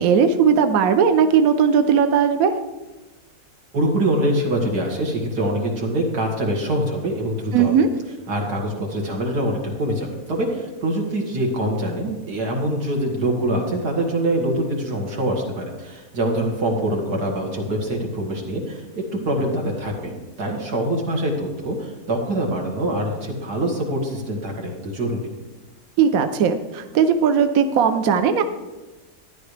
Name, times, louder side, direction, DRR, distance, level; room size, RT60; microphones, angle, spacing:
voice 1, 0.0-2.5 7.5-7.9 26.0-28.4, right 7 dB, 70° right, 8 dB, 1.0 m, -18 dB
voice 2, 3.7-7.8 8.3-25.2, right 1 dB, 85° right, 0 dB, 2.5 m, -24 dB
13.0 x 10.5 x 3.3 m, 1.1 s
omnidirectional pair, 1.7 m